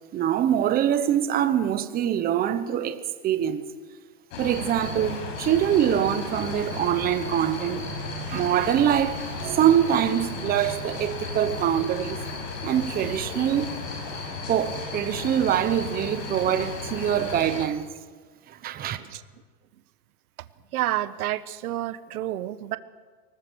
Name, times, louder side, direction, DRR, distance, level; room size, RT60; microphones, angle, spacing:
voice 1, 0.1-3.7 4.4-12.2 12.6-13.7 14.5-17.9 18.5-19.0, right 10 dB, 20° right, 1.1 m, -24 dB
sound 1, 4.3-17.7, left 4 dB, 55° left, 5.6 m, -34 dB
voice 2, 20.7-22.8, right 14 dB, 65° right, 1.3 m, -29 dB
23.5 x 20.0 x 6.3 m
supercardioid pair, 150°, 47 cm